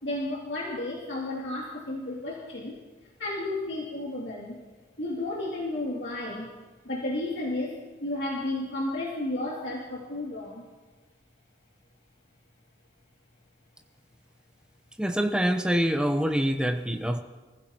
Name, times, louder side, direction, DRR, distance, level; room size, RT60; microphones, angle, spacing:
voice 1, 0.0-2.8 3.2-4.6 5.0-6.5 6.8-10.6, left 2 dB, 75° left, -4 dB, 2.7 m, -32 dB
voice 2, 15.0-17.2, equal, 5° right, 6 dB, 0.9 m, -25 dB
28.0 x 15.0 x 3.0 m, 1.3 s
head